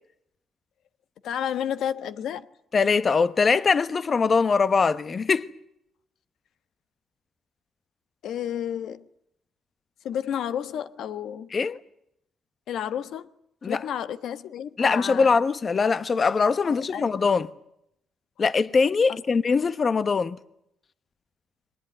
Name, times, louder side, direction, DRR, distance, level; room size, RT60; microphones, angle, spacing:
voice 1, 1.2-2.5 8.2-9.0 10.0-11.5 12.7-13.3 13.7-15.3 16.6-17.2 19.1-19.2, left 9 dB, 75° left, 1.2 m, -31 dB
voice 2, 2.7-5.5 11.5-11.8 13.6-13.8 14.8-17.5 18.4-20.4, left 5 dB, 40° left, 1.2 m, -22 dB
23.5 x 19.5 x 9.6 m
cardioid pair, 90°, 0 cm